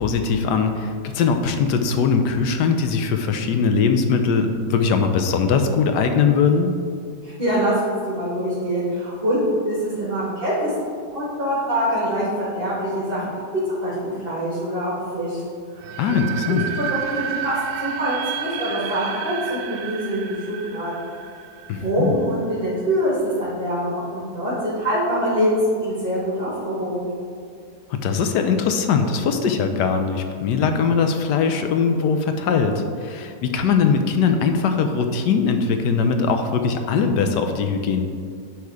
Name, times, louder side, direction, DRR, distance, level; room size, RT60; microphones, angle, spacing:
voice 1, 0.0-6.7 16.0-16.6 21.7-22.1 27.9-38.0, left 5 dB, 80° left, 6 dB, 1.3 m, -21 dB
voice 2, 7.2-10.7 11.1-13.3 13.7-15.4 16.1-21.1 21.8-27.1, equal, 30° right, -9 dB, 2.1 m, -24 dB
sound 1, 15.8-22.7, right 9 dB, 85° right, 1.2 m, -31 dB
10.5 x 3.6 x 4.8 m, 2.2 s
omnidirectional pair, 1.8 m